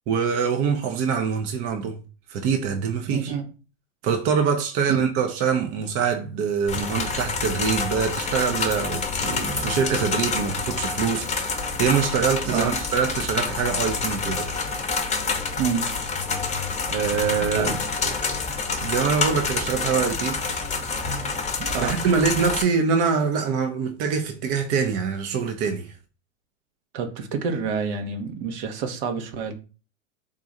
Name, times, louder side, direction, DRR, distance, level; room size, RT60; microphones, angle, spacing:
voice 1, 0.1-2.0 2.3-3.3 4.0-14.5 16.9-17.7 18.0-18.1 18.8-20.6 21.8-26.0, right 6 dB, 40° right, 0.6 m, -24 dB
voice 2, 3.1-3.5 5.0-5.1 12.5-12.7 15.6-15.9 17.5-17.8 21.6-22.0 26.9-29.5, right 6 dB, 60° right, 1.0 m, -28 dB
sound 1, 6.7-22.6, left 4 dB, 20° left, 0.8 m, -27 dB
3.7 x 2.4 x 4.0 m
hypercardioid pair, 100°, 38 cm